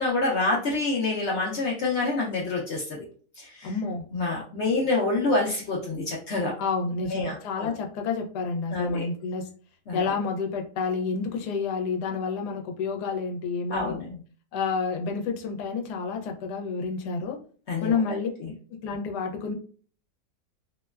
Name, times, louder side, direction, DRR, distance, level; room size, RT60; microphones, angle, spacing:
voice 1, 0.0-3.0 3.4-3.7 4.1-6.5 7.1-7.7 8.7-9.1 9.9-10.0 13.7-14.2 17.7-17.9, left 3 dB, 65° left, -3 dB, 0.7 m, -27 dB
voice 2, 3.6-4.0 6.6-9.5 9.9-14.0 14.5-17.4 17.8-18.3 18.7-19.5, left 4 dB, 90° left, 2 dB, 1.2 m, -29 dB
2.9 x 2.1 x 2.2 m, 0.43 s
omnidirectional pair, 1.7 m